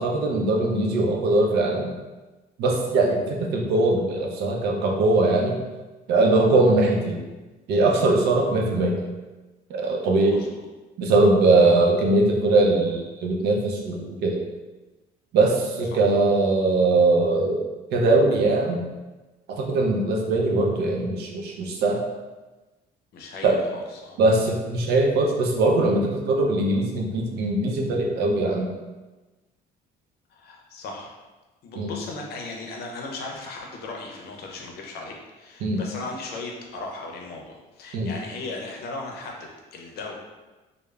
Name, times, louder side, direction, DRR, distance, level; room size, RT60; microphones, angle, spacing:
voice 1, 0.0-1.9 2.6-5.6 6.1-7.2 7.7-9.0 9.7-10.4 11.0-14.4 15.3-17.6 17.9-18.8 19.5-22.0 23.4-23.6 24.2-28.7 31.8-31.9 35.6-35.8 37.9-38.1, right 2 dB, 75° right, 0 dB, 0.5 m, -21 dB
voice 2, 10.3-10.7 15.9-16.0 23.1-24.2 30.3-31.1 31.6-40.1, left 3 dB, 70° left, 0 dB, 0.5 m, -37 dB
3.1 x 2.0 x 2.3 m, 1.2 s
cardioid pair, 110°, 17 cm